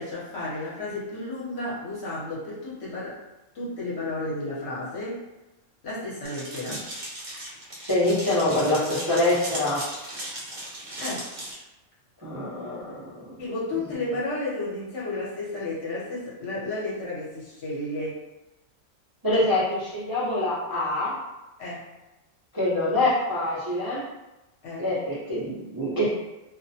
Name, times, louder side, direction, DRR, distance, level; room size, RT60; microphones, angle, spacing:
voice 1, 0.0-3.2 3.5-5.3 5.8-6.8 11.0-11.3 13.4-18.2 21.6-21.9 24.6-24.9, left 2 dB, 60° left, -6 dB, 1.0 m, -32 dB
sound 1, 6.2-11.5, right 1 dB, 55° right, 0.8 m, -37 dB
voice 2, 7.8-9.8 12.2-13.3 19.2-21.2 22.5-24.0 24.8-26.1, left 1 dB, 25° right, -11 dB, 0.6 m, -25 dB
2.4 x 2.1 x 2.6 m, 1.0 s
omnidirectional pair, 1.3 m